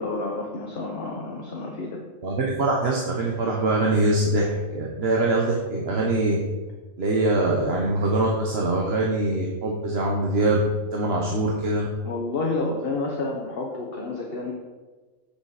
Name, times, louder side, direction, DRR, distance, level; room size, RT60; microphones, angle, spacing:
voice 1, 0.0-2.0 12.0-14.5, left 3 dB, 50° left, -1 dB, 1.3 m, -29 dB
voice 2, 2.2-6.4 7.0-10.6 10.9-11.9, right 2 dB, 55° right, -1 dB, 1.3 m, -23 dB
8.2 x 6.8 x 4.9 m, 1.3 s
omnidirectional pair, 1.3 m